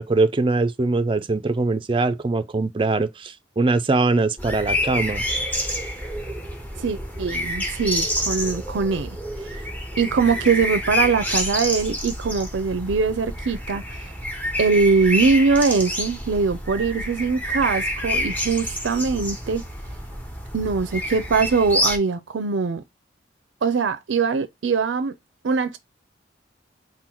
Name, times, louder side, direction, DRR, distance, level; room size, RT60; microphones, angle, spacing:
voice 1, 0.0-5.2, right 3 dB, 30° right, 0.4 m, -22 dB
sound 1, 4.4-22.0, left 1 dB, 10° left, 0.8 m, -28 dB
voice 2, 6.8-9.2 10.0-14.1 14.6-19.6 20.5-22.8 23.6-25.1 25.4-25.8, right 4 dB, 80° right, 0.5 m, -22 dB
3.8 x 2.2 x 4.3 m
head